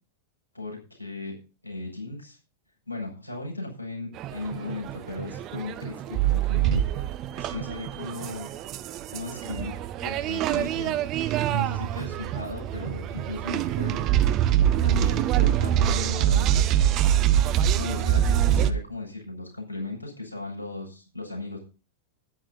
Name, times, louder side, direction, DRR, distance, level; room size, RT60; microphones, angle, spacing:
voice 1, 0.5-1.4 1.6-2.4 2.9-7.1 7.4-8.5 9.1-11.0 11.5-14.1 14.8-16.9 17.8-21.6, left 3 dB, 90° left, -1 dB, 7.5 m, -37 dB
sound 1, 4.2-18.7, right 11 dB, 35° right, 1.1 m, -24 dB
13.5 x 11.0 x 4.2 m, 0.33 s
figure-of-eight pair, 90°, 0 cm